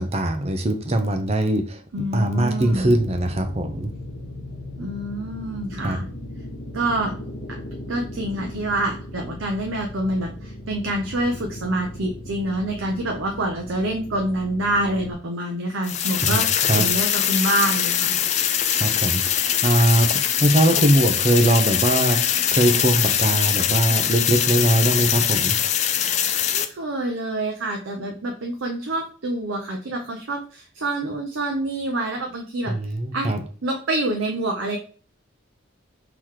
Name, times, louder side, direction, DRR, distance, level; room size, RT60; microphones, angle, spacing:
voice 1, 0.0-1.8 2.1-3.9 5.8-6.0 16.2-16.4 16.7-16.9 18.8-22.2 22.5-25.5 32.7-33.4, right 1 dB, 30° right, 6 dB, 0.6 m, -21 dB
voice 2, 1.9-2.9 4.8-6.1 6.7-7.1 7.9-18.2 26.5-33.3 33.6-34.8, right 1 dB, 80° right, 2 dB, 0.7 m, -27 dB
sound 1, 2.6-15.1, left 1 dB, 80° left, 1.0 m, -37 dB
sound 2, 15.8-26.6, left 9 dB, 35° left, 0.3 m, -22 dB
3.9 x 2.9 x 4.6 m, 0.41 s
head